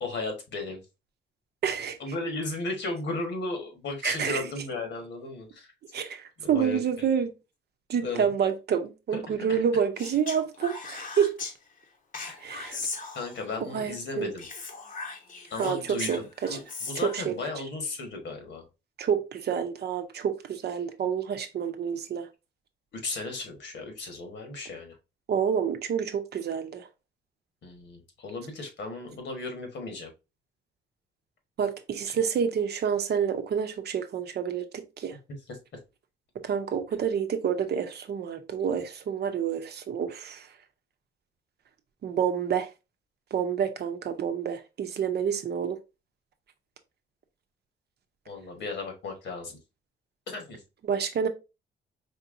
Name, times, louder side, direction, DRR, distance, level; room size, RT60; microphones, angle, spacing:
voice 1, 0.0-0.8 2.0-5.7 6.4-7.1 8.0-8.3 9.1-9.6 12.2-12.4 13.1-14.5 15.5-18.6 22.9-24.9 27.6-30.1 35.5-35.6 48.3-49.6 50.3-50.6, left 3 dB, 65° left, 1.4 m, -35 dB
voice 2, 1.6-2.0 4.0-4.4 5.9-7.3 7.9-11.3 12.4-12.8 13.7-14.3 15.6-16.6 17.0-17.3 19.0-22.3 25.3-26.9 31.6-35.2 36.4-40.5 42.0-42.7 43.3-45.8 50.9-51.3, right 7 dB, 55° right, 0.7 m, -28 dB
Speech, 10.0-11.5 12.1-13.6 14.4-17.2, left 4 dB, 45° left, 0.9 m, -38 dB
4.4 x 2.9 x 2.5 m
cardioid pair, 90°, 20 cm